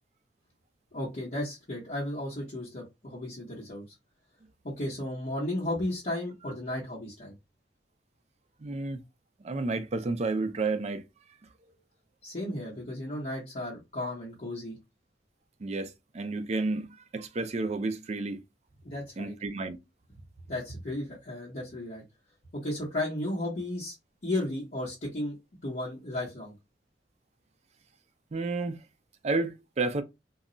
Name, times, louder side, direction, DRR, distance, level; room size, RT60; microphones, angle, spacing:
voice 1, 0.9-3.9 4.6-7.3 12.2-14.8 18.8-19.3 20.2-22.0 22.5-23.9 24.2-25.3 25.6-26.5, left 1 dB, 50° left, 0.9 m, -34 dB
voice 2, 8.6-9.0 9.4-11.0 15.6-18.4 19.2-19.8 28.3-28.8 29.2-30.0, right 3 dB, 40° right, 0.4 m, -31 dB
2.2 x 2.0 x 3.7 m
head